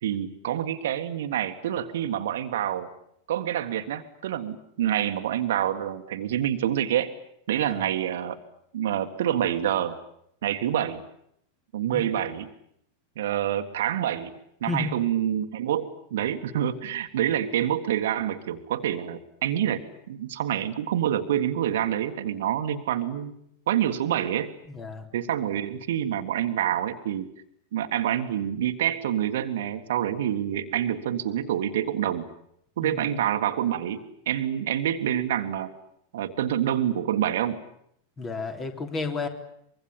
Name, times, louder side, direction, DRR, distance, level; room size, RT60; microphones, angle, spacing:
voice 1, 0.0-2.9 3.3-7.1 7.5-8.4 8.7-10.0 10.4-11.0 11.7-12.5 13.1-14.3 14.6-19.8 20.1-23.4 23.7-24.5 25.1-27.3 27.7-32.3 32.8-35.7 36.1-37.6, right 10 dB, 60° right, 8 dB, 1.8 m, -27 dB
voice 2, 24.7-25.1 32.8-33.1 38.2-39.3, left 3 dB, 25° left, 6 dB, 3.6 m, -32 dB
24.5 x 23.0 x 8.7 m, 0.71 s
figure-of-eight pair, 90°, 0 cm